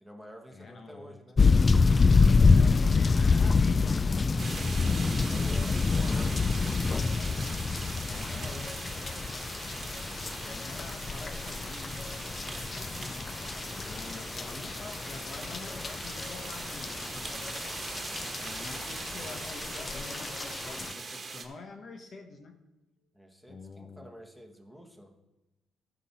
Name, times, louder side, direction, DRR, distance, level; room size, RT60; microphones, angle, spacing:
voice 1, 0.0-1.4 5.3-7.1 13.8-14.5 23.1-25.1, equal, ahead, 3 dB, 1.4 m, -50 dB
voice 2, 0.5-1.2 2.4-4.9 5.5-6.4 8.1-8.8 10.2-12.2 13.7-17.6 18.4-22.6 23.5-24.1, left 3 dB, 50° left, 5 dB, 1.0 m, -46 dB
sound 1, 1.4-20.9, left 4 dB, 30° left, 0.4 m, -27 dB
sound 2, 4.4-21.5, right 4 dB, 40° right, 1.3 m, -42 dB
13.5 x 6.1 x 4.2 m, 1.0 s
cardioid pair, 90°, 0 cm